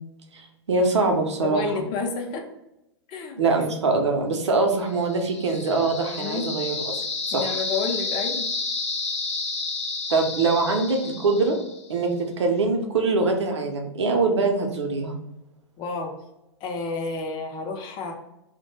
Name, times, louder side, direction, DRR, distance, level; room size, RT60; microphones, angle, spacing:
voice 1, 0.3-1.8 3.4-7.0 7.3-7.6 10.1-11.6 11.9-15.2, right 3 dB, 75° right, 3 dB, 0.6 m, -23 dB
voice 2, 1.4-2.4 3.1-3.4 6.2-6.5 7.3-8.5 15.8-16.1 16.6-18.1, left 4 dB, 35° left, 3 dB, 0.5 m, -30 dB
sound 1, 5.0-11.9, left 3 dB, 80° left, 0.6 m, -31 dB
2.2 x 2.1 x 3.0 m, 0.90 s
figure-of-eight pair, 105°, 15 cm